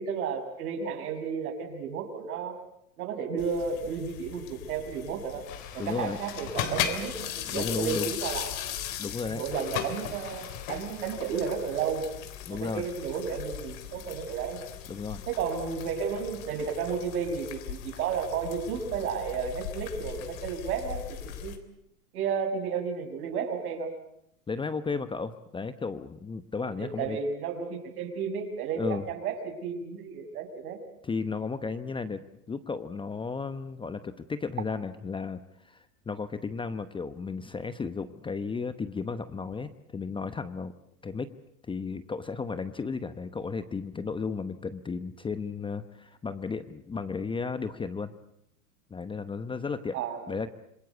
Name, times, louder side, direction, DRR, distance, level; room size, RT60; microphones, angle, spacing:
voice 1, 0.0-2.6 3.0-5.5 5.7-8.8 9.2-12.1 12.5-14.6 15.3-21.0 21.4-21.6 22.1-23.9 26.8-30.8 49.9-50.2, right 6 dB, 70° right, 5 dB, 6.2 m, -32 dB
sound 1, 3.4-21.6, left 10 dB, 60° left, 3.5 m, -38 dB
Water, 5.3-8.1 9.4-12.2, left 8 dB, 40° left, 3.9 m, -50 dB
voice 2, 5.8-6.2 7.4-8.1 9.0-9.4 12.5-12.9 14.9-15.2 24.5-27.2 28.8-29.0 31.0-40.7 41.0-41.3 41.7-48.1 48.9-50.0 50.3-50.5, left 4 dB, 10° left, 11 dB, 0.9 m, -34 dB
27.0 x 20.5 x 8.3 m, 0.76 s
hypercardioid pair, 125°, 45 cm